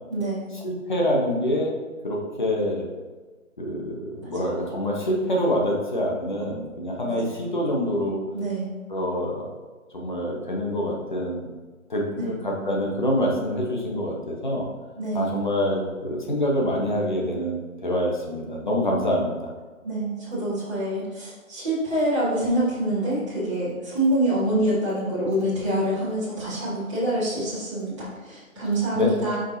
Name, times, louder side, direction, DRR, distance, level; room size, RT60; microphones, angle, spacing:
voice 1, 0.1-0.5 7.1-7.2 8.3-8.7 12.1-12.3 15.0-15.3 19.8-29.4, right 1 dB, 20° right, -11 dB, 1.8 m, -26 dB
voice 2, 0.6-1.7 2.0-2.8 3.6-8.2 8.9-9.5 9.9-11.5 11.9-14.7 15.1-19.5 29.0-29.1, equal, 35° left, -2 dB, 1.0 m, -26 dB
7.3 x 5.2 x 2.7 m, 1.3 s
hypercardioid pair, 175°, 42 cm